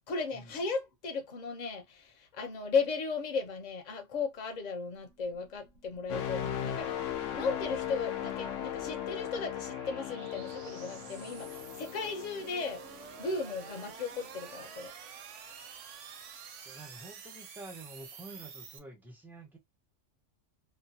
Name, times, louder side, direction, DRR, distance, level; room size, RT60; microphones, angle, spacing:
voice 1, 0.1-12.8 13.2-14.9, left 4 dB, 45° left, 0.6 m, -36 dB
sound 1, 4.9-18.8, right 6 dB, 80° right, 1.0 m, -50 dB
sound 2, 6.1-13.9 14.4-14.6, left 10 dB, 80° left, 0.9 m, -38 dB
voice 2, 16.6-19.6, right 2 dB, ahead, 0.4 m, -48 dB
2.9 x 2.1 x 2.7 m
omnidirectional pair, 1.3 m